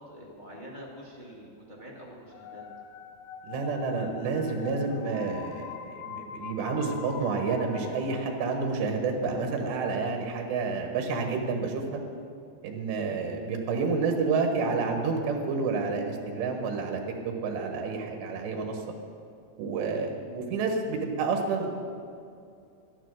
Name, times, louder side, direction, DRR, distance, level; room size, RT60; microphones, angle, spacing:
voice 1, 0.0-2.6 13.3-13.5, equal, 20° right, -5 dB, 1.1 m, -46 dB
sound 1, 2.3-9.1, left 8 dB, 75° left, 2.0 m, -43 dB
voice 2, 3.4-12.0 12.6-18.8 19.6-21.7, right 4 dB, 85° right, 3 dB, 3.6 m, -29 dB
12.0 x 12.0 x 6.4 m, 2.5 s
omnidirectional pair, 4.9 m